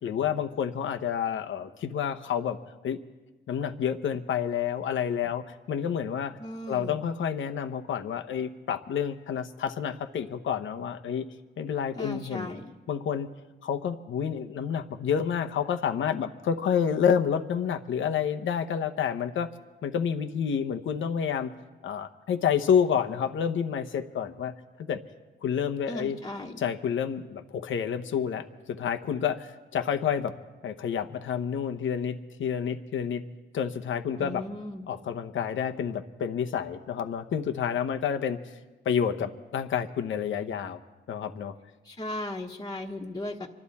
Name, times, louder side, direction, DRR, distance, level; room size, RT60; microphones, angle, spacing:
voice 1, 0.0-2.6 2.8-3.0 3.5-6.4 6.7-11.3 11.6-12.5 12.9-13.3 13.6-19.5 19.8-21.5 21.8-24.5 24.8-25.0 25.4-26.2 26.6-30.3 30.6-33.2 33.5-34.4 34.9-38.4 38.8-40.8 41.1-41.5, left 8 dB, 80° left, 7 dB, 0.9 m, -29 dB
voice 2, 6.4-7.0 11.9-12.7 25.9-26.6 34.2-34.9 41.8-43.5, left 1 dB, 20° left, -1 dB, 1.3 m, -37 dB
25.0 x 12.0 x 4.2 m, 1.2 s
cardioid pair, 80°, 20 cm